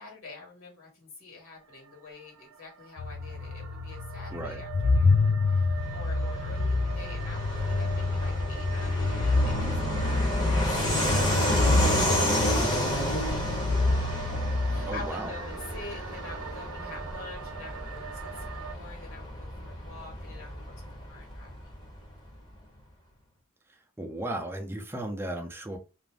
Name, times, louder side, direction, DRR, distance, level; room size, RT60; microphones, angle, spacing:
voice 1, 0.0-20.7 21.1-21.8, left 3 dB, 70° left, 1.4 m, -47 dB
sound 1, 1.4-18.7, right 9 dB, 85° right, 0.4 m, -43 dB
sound 2, 3.0-15.1, left 3 dB, 45° left, 0.3 m, -28 dB
Fixed-wing aircraft airplane, 5.8-22.0, equal, 20° left, 0.8 m, -31 dB
voice 2, 14.8-15.3 24.0-25.8, right 1 dB, 10° right, 0.5 m, -35 dB
2.5 x 2.0 x 3.3 m
head